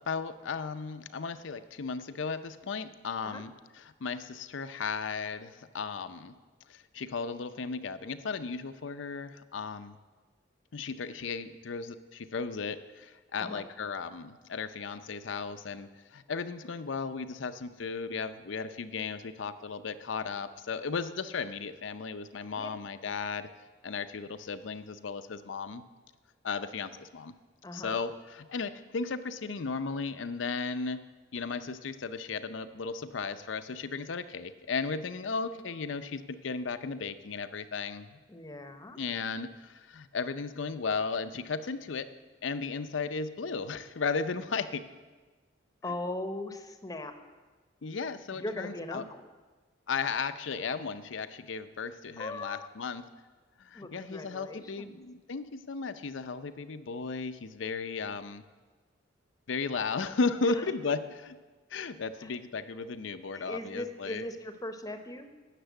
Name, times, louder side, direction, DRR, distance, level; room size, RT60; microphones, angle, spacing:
voice 1, 0.0-6.3 6.7-10.0 10.7-23.5 23.8-25.8 26.4-27.3 27.7-31.0 31.3-38.2 39.0-42.1 42.4-44.8 47.8-49.0 49.9-53.0 53.6-58.4 59.5-61.4 61.7-64.2, left 4 dB, 75° left, 11 dB, 0.6 m, -35 dB
voice 2, 27.6-28.0 38.3-39.0 45.8-47.1 48.3-49.2 52.2-52.7 53.7-54.9 62.2-62.3 63.3-65.3, left 2 dB, 20° left, 8 dB, 0.8 m, -39 dB
10.0 x 6.7 x 8.1 m, 1.3 s
head